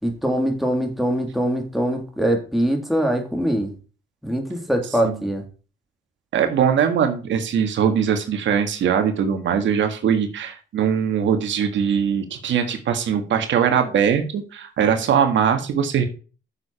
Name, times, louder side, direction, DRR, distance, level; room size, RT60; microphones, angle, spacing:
voice 1, 0.0-3.7 4.2-5.4, right 1 dB, ahead, 1 dB, 3.2 m, -23 dB
voice 2, 6.3-16.1, right 8 dB, 70° right, 6 dB, 1.8 m, -21 dB
9.6 x 7.1 x 4.3 m, 0.35 s
cardioid pair, 90°, 20 cm